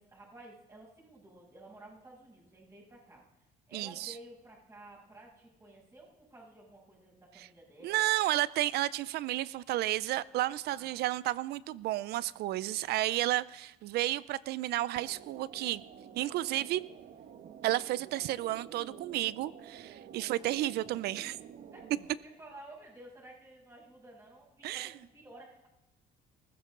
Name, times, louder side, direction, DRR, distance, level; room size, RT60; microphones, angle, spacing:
voice 1, 0.0-3.2 3.7-8.4 10.6-11.1 20.1-20.6 21.7-25.7, right 1 dB, 20° right, 7.3 m, -53 dB
voice 2, 3.7-4.1 7.4-7.5 7.8-15.8 16.2-16.9 17.6-21.4 24.6-24.9, right 15 dB, 75° right, 0.5 m, -32 dB
sound 1, 15.0-22.1, right 8 dB, 55° right, 1.2 m, -50 dB
19.5 x 15.5 x 3.8 m
cardioid pair, 110°, 17 cm